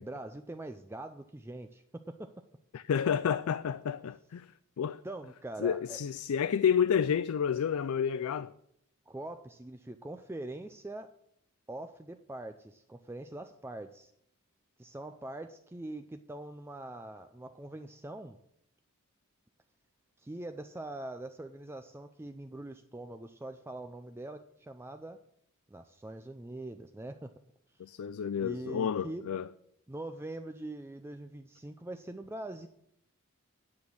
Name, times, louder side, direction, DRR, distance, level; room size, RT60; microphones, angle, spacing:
voice 1, 0.0-2.3 5.0-6.0 9.1-11.1 11.7-14.1 14.8-18.4 20.2-25.2 25.7-27.3 28.3-29.3 29.9-32.7, right 1 dB, 10° right, 0.4 m, -43 dB
voice 2, 2.7-4.5 4.8-5.0 5.6-8.5 27.8-29.5, left 7 dB, 85° left, 0.4 m, -30 dB
9.7 x 6.1 x 8.6 m
head